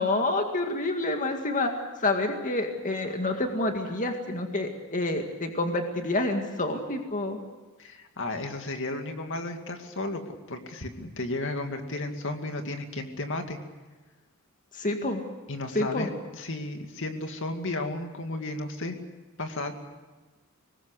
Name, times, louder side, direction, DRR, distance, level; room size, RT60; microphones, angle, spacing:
voice 1, 0.0-7.4 14.7-15.2 15.7-16.1, left 2 dB, 35° left, 4 dB, 2.0 m, -28 dB
voice 2, 7.8-13.6 15.5-19.0 19.4-19.7, left 2 dB, 60° left, 5 dB, 2.3 m, -33 dB
24.5 x 20.5 x 8.2 m, 1.2 s
head